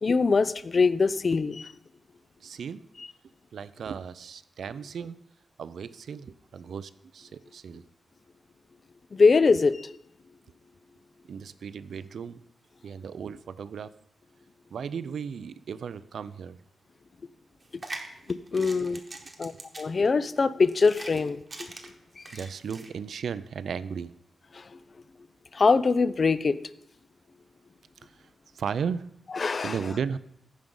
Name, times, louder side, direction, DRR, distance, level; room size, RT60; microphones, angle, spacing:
voice 1, 0.0-1.7 9.1-9.8 18.3-19.0 19.4-19.5 19.8-21.4 22.2-22.3 25.5-26.6 29.4-29.7, left 4 dB, 40° left, 16 dB, 0.3 m, -22 dB
voice 2, 2.4-2.8 3.5-5.2 5.6-7.8 9.5-9.6 11.3-12.4 12.8-13.9 14.7-16.6 18.5-18.8 19.2-19.5 22.3-24.1 28.0-28.3 28.5-29.1 29.6-30.2, right 6 dB, 75° right, 15 dB, 0.4 m, -35 dB
sound 1, 17.6-22.9, right 2 dB, 30° right, 1.0 m, -43 dB
14.5 x 5.2 x 3.8 m, 0.76 s
wide cardioid pair, 130°, 0 cm